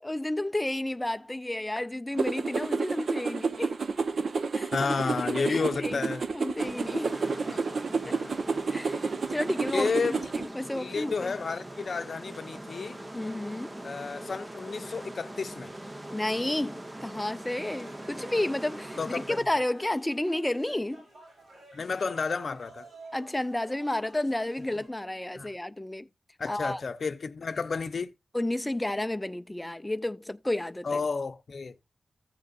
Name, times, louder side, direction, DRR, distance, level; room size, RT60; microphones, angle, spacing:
voice 1, 0.0-3.8 4.5-5.0 5.3-6.1 6.3-7.3 8.1-8.2 8.7-11.3 13.1-13.8 16.1-21.0 23.1-26.1 26.5-26.8 28.3-31.0, left 1 dB, 10° left, 0.4 m, -31 dB
sound 1, 2.2-10.5, right 4 dB, 60° right, 0.7 m, -30 dB
voice 2, 4.7-6.2 7.5-7.6 8.0-8.4 9.7-10.2 10.7-13.0 13.8-15.7 19.0-19.4 21.7-22.9 25.4-25.5 26.4-28.1 30.8-31.7, left 4 dB, 55° left, 0.7 m, -31 dB
sound 2, 6.6-19.4, right 1 dB, 20° right, 0.7 m, -42 dB
sound 3, 17.7-24.9, right 3 dB, 85° right, 5.7 m, -52 dB
15.5 x 6.8 x 2.4 m
wide cardioid pair, 160°, 0 cm